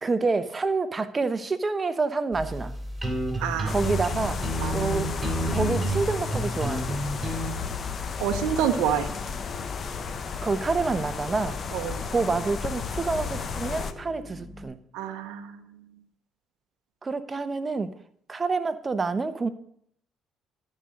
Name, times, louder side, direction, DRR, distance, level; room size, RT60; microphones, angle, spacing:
voice 1, 0.0-2.8 3.7-4.4 4.7-5.1 5.5-7.0 10.4-11.6 12.1-14.8 17.0-17.9 18.3-19.5, right 4 dB, 30° right, 12 dB, 0.9 m, -27 dB
sound 1, 2.3-7.5, right 1 dB, 15° right, 3.5 m, -30 dB
voice 2, 3.4-3.7 4.6-4.9 8.2-9.1 11.7-12.0 14.9-15.7, right 9 dB, 80° right, 7 dB, 0.8 m, -28 dB
sound 2, 3.7-13.9, left 6 dB, 50° left, 0.9 m, -33 dB
sound 3, 4.6-14.6, left 1 dB, 25° left, 4.5 m, -42 dB
13.0 x 5.3 x 6.4 m, 0.67 s
supercardioid pair, 60°, 0 cm